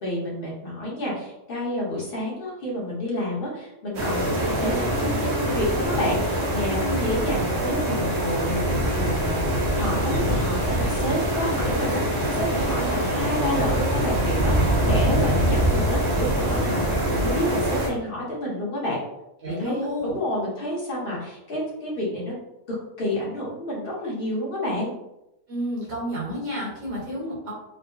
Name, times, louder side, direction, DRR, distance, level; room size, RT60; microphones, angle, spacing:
voice 1, 0.0-4.7 5.0-9.4 9.7-16.8 17.1-19.0 19.5-22.3 23.0-24.9, equal, 40° left, -5 dB, 1.0 m, -29 dB
sound 1, 3.9-17.9, right 1 dB, 60° right, 0.8 m, -24 dB
voice 2, 6.7-7.1 19.4-20.2 25.5-27.5, equal, 35° right, -6 dB, 1.0 m, -30 dB
3.7 x 2.1 x 2.3 m, 0.88 s
omnidirectional pair, 1.7 m